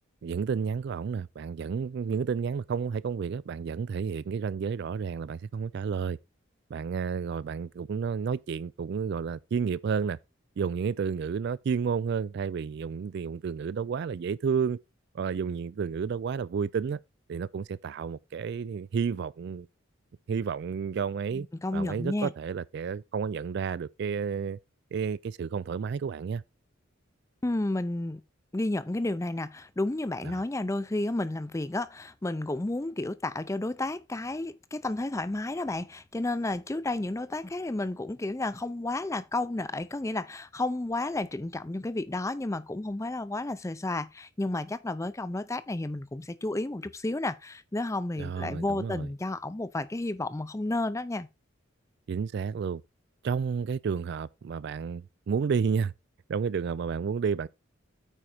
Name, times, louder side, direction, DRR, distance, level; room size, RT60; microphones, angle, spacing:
voice 1, 0.2-6.2 6.7-10.2 10.6-14.8 15.1-17.0 17.3-19.7 20.3-21.5 21.7-24.6 24.9-26.4 30.2-30.4 48.2-49.1 52.1-52.8 53.2-55.9 56.3-57.5, right 6 dB, 55° right, 0.3 m, -31 dB
voice 2, 21.3-22.3 27.4-28.2 28.5-51.3, left 2 dB, 15° left, 0.5 m, -32 dB
9.0 x 4.8 x 4.3 m
head